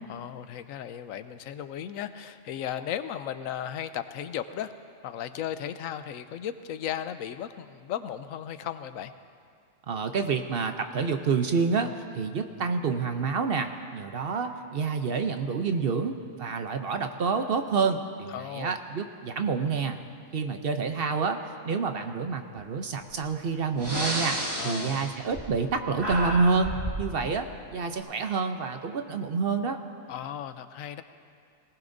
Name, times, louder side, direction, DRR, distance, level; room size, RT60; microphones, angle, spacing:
voice 1, 0.1-4.7 5.0-9.1 18.3-18.8 24.6-25.1 30.1-31.0, left 10 dB, 90° left, 11 dB, 1.0 m, -36 dB
voice 2, 9.9-20.0 20.3-26.7 27.0-29.8, right 5 dB, 55° right, 7 dB, 0.8 m, -28 dB
Breathing, 23.1-23.3 23.7-25.7 26.0-27.1, right 1 dB, 20° right, 1.9 m, -31 dB
19.0 x 18.5 x 2.6 m, 2.2 s
omnidirectional pair, 1.4 m